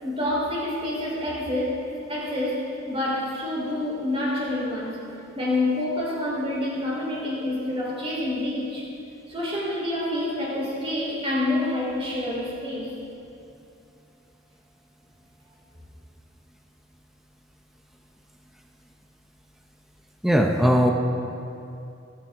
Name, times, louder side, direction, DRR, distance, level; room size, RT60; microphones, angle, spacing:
voice 1, 0.0-1.8 2.1-5.0 5.3-8.9 9.3-12.9, left 1 dB, 30° right, -5 dB, 3.9 m, -27 dB
voice 2, 20.2-20.9, equal, ahead, 2 dB, 0.7 m, -19 dB
19.5 x 11.5 x 3.7 m, 2.7 s
head